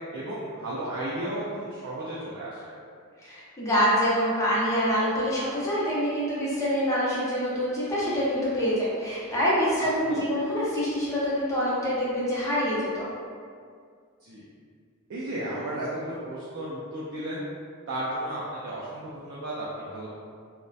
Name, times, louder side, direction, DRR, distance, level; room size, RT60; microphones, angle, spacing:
voice 1, 0.1-2.7 9.8-10.2 14.2-14.5 15.1-17.4 17.9-20.1, right 1 dB, 55° right, -7 dB, 0.4 m, -34 dB
voice 2, 3.2-13.1, equal, 15° left, -9 dB, 0.6 m, -26 dB
2.6 x 2.1 x 2.2 m, 2.2 s
head